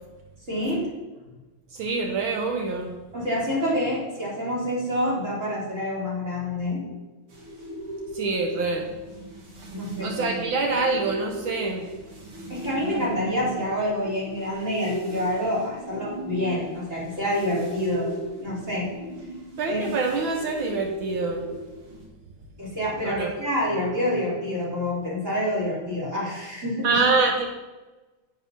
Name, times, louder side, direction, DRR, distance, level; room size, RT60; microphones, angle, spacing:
voice 1, 0.5-0.9 3.1-6.8 9.7-10.1 12.5-18.1 18.4-18.9 19.7-20.0 22.6-27.0, left 1 dB, 35° right, -6 dB, 5.0 m, -27 dB
voice 2, 1.7-3.0 8.1-8.9 10.0-11.9 19.6-21.5 23.0-23.3 26.8-27.5, right 4 dB, 70° right, 2 dB, 1.8 m, -25 dB
sound 1, 7.3-22.1, right 1 dB, 90° right, 2.8 m, -37 dB
9.7 x 8.2 x 5.8 m, 1.1 s
omnidirectional pair, 2.3 m